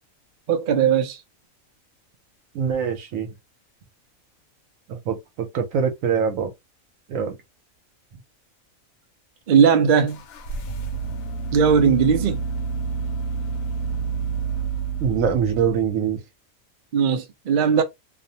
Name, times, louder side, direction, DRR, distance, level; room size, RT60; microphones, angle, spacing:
voice 1, 0.5-1.2 9.5-10.2 11.5-12.4 16.9-17.8, right 7 dB, 55° right, 0.6 m, -18 dB
voice 2, 2.5-3.3 4.9-6.5 7.1-7.4 15.0-16.2, right 7 dB, 80° right, 1.1 m, -24 dB
sound 1, 10.1-16.0, right 5 dB, 85° left, 1.0 m, -29 dB
2.6 x 2.0 x 2.7 m
omnidirectional pair, 1.4 m